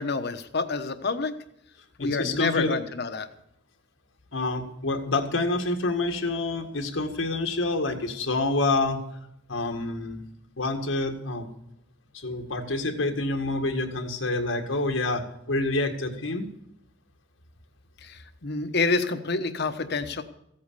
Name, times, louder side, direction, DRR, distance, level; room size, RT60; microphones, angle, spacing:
voice 1, 0.0-1.3 2.0-3.3 18.0-20.2, left 3 dB, 60° left, 9 dB, 1.1 m, -28 dB
voice 2, 2.0-2.8 4.3-9.0 9.5-10.2 10.6-11.5 12.1-16.4, left 2 dB, 85° left, 4 dB, 1.9 m, -27 dB
15.5 x 8.6 x 6.8 m, 0.79 s
head